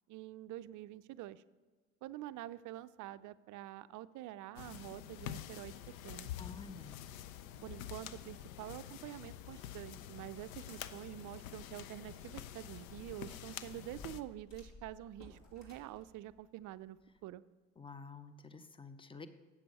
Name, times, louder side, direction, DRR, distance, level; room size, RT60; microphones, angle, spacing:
voice 1, 0.1-1.4 2.0-5.7 6.0-6.3 7.6-17.4, right 14 dB, 50° right, 15 dB, 0.4 m, -47 dB
sound 1, 4.6-14.2, left 11 dB, 90° left, 0.5 m, -47 dB
voice 2, 6.4-7.1 17.8-19.3, left 4 dB, 15° left, 11 dB, 0.6 m, -50 dB
sound 2, 10.6-11.5 12.0-12.1 13.0-17.2, left 2 dB, 40° left, 2.4 m, -57 dB
8.4 x 6.9 x 5.2 m, 1.3 s
hypercardioid pair, 70°, 41 cm